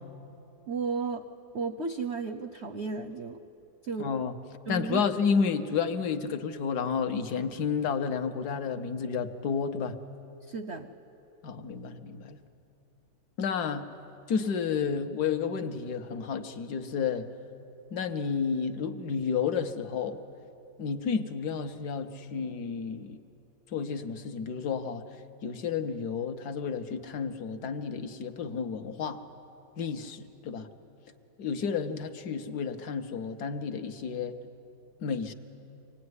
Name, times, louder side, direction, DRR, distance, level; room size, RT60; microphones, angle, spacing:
voice 1, 0.7-1.2 1.5-3.4 3.8-4.1 4.7-5.0 10.5-10.9, right 5 dB, 55° right, 7 dB, 0.7 m, -33 dB
voice 2, 4.0-4.3 4.7-10.0 11.4-12.4 13.4-13.9 14.3-17.3 17.9-20.2 20.8-23.2 23.7-25.0 25.4-29.2 29.8-30.7 31.4-34.4 35.0-35.3, left 6 dB, 60° left, 8 dB, 1.4 m, -31 dB
25.0 x 18.0 x 9.6 m, 2.9 s
omnidirectional pair, 2.0 m